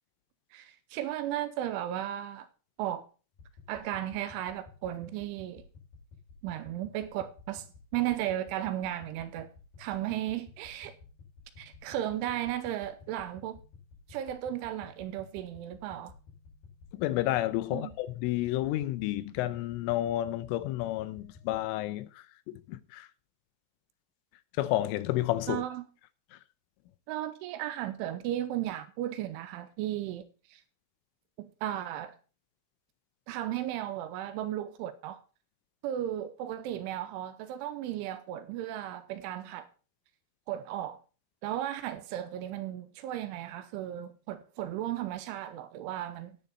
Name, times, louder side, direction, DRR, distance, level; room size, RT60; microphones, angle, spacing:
voice 1, 0.5-2.5 2.8-3.1 3.7-5.6 6.4-7.7 7.9-9.5 9.8-10.9 11.6-13.6 14.1-16.1 17.7-17.9 25.5-25.9 27.1-30.2 30.5-30.6 31.4-32.2 33.3-35.2 35.8-39.7 40.5-41.0 41.4-46.4, right 12 dB, 80° right, 3.0 m, -35 dB
sound 1, 3.3-21.6, left 4 dB, 45° left, 6.7 m, -54 dB
voice 2, 16.9-23.1 24.6-25.6, left 15 dB, 80° left, 3.1 m, -31 dB
10.5 x 9.5 x 4.1 m
omnidirectional pair, 5.9 m